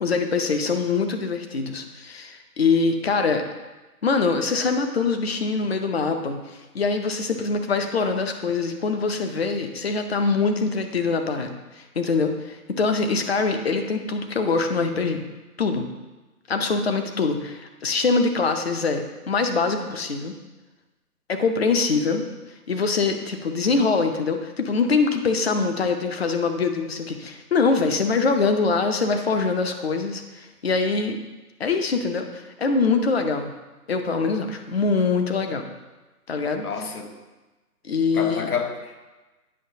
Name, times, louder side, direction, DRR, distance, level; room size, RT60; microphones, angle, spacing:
voice 1, 0.0-3.4 4.0-15.2 15.6-15.9 16.5-20.3 21.3-22.2 22.7-31.2 31.6-33.5 33.9-35.6 36.3-36.7 37.8-38.5, left 4 dB, 40° left, 6 dB, 0.6 m, -23 dB
voice 2, 36.6-37.2 38.1-39.1, left 6 dB, 70° left, 5 dB, 1.0 m, -29 dB
8.6 x 5.4 x 2.7 m, 1.2 s
figure-of-eight pair, 145°, 47 cm